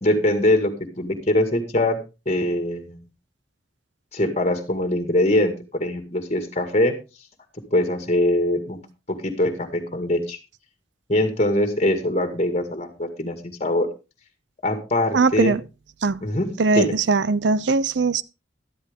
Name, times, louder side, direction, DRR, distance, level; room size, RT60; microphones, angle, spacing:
voice 1, 0.0-0.7 1.0-2.0 2.3-3.0 4.1-5.5 5.8-6.9 7.7-8.8 9.1-10.4 11.1-13.9 14.6-15.6 16.2-16.5 16.8-16.9, left 1 dB, 35° left, 2.0 m, -22 dB
voice 2, 15.1-15.6 16.0-16.2 16.6-18.2, right 4 dB, 75° right, 0.6 m, -20 dB
12.5 x 12.0 x 3.6 m
head